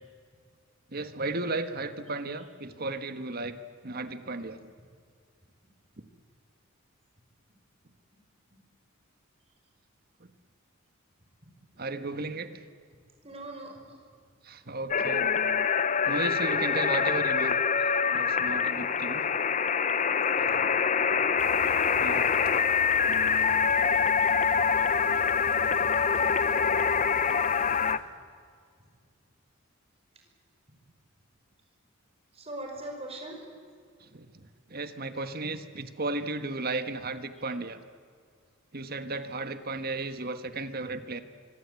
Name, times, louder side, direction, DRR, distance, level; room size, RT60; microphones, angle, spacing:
voice 1, 0.9-4.7 10.2-10.3 11.8-12.6 14.4-15.3 16.0-17.5 18.1-19.3 22.0-22.3 34.0-37.8 38.7-41.2, right 2 dB, 45° right, 10 dB, 1.4 m, -34 dB
voice 2, 13.2-14.0 20.3-21.1 22.1-22.2 32.3-33.4, right 1 dB, 30° right, 2 dB, 5.5 m, -41 dB
sound 1, 14.9-28.0, left 6 dB, 35° left, 0.7 m, -25 dB
sound 2, 21.4-28.0, left 3 dB, 90° left, 2.5 m, -43 dB
24.5 x 24.5 x 8.4 m, 2.1 s
head